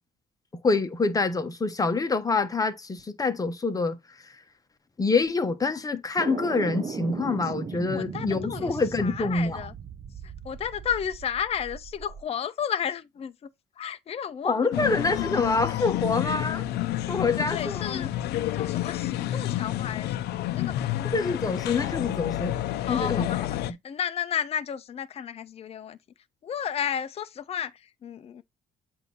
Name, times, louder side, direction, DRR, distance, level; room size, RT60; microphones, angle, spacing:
voice 1, 0.6-4.0 4.2-4.3 5.0-9.6 14.4-16.6 17.1-18.1 21.1-22.6 22.9-23.3, left 3 dB, 20° left, 1.1 m, -26 dB
sound 1, 6.2-12.2, right 6 dB, 35° right, 0.8 m, -37 dB
voice 2, 7.9-9.7 10.4-13.5 13.8-15.0 17.5-18.1 18.5-21.1 22.8-26.0 26.4-28.4, left 8 dB, 35° left, 0.6 m, -33 dB
sound 2, 14.7-23.7, left 14 dB, 75° left, 0.6 m, -29 dB
8.1 x 2.8 x 5.4 m
cardioid pair, 110°, 17 cm